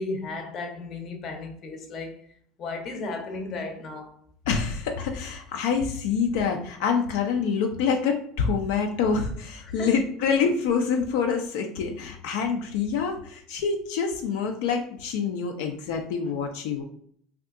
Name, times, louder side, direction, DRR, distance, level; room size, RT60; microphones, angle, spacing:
voice 1, 0.0-4.2 9.6-10.0 16.2-16.3, left 3 dB, 40° left, 0.6 m, -35 dB
voice 2, 4.5-16.8, left 6 dB, 80° left, 0.4 m, -26 dB
2.7 x 2.3 x 3.5 m
cardioid pair, 145°, 0 cm